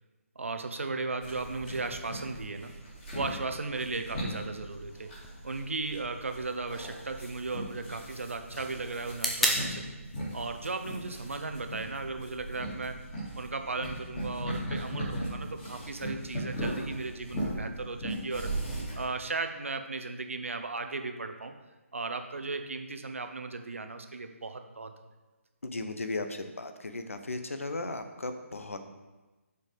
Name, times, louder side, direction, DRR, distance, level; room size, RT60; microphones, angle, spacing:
voice 1, 0.4-2.8 3.1-5.1 5.4-9.9 10.3-13.0 13.3-18.6 18.9-21.5 21.9-25.0, right 3 dB, 60° right, 7 dB, 0.7 m, -36 dB
sound 1, 1.2-19.0, right 1 dB, 20° left, 2.3 m, -38 dB
sound 2, 5.1-13.1, left 1 dB, ahead, 0.4 m, -38 dB
voice 2, 25.6-28.8, left 2 dB, 65° left, 9 dB, 0.8 m, -36 dB
6.8 x 4.5 x 5.1 m, 1.2 s
figure-of-eight pair, 145°, 8 cm